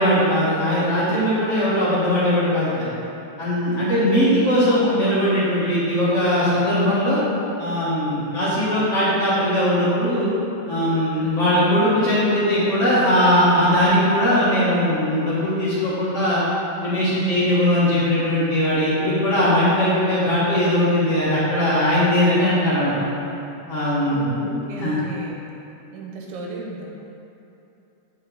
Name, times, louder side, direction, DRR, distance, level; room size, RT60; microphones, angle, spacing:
voice 1, 0.0-2.9 3.4-7.2 7.6-10.3 10.7-16.4 16.8-22.9 23.7-24.2 24.5-25.0, equal, 40° left, -11 dB, 1.1 m, -20 dB
voice 2, 11.1-11.5 24.0-25.4 25.9-26.9, right 2 dB, 85° right, -1 dB, 2.4 m, -35 dB
6.5 x 4.5 x 3.9 m, 2.9 s
omnidirectional pair, 3.6 m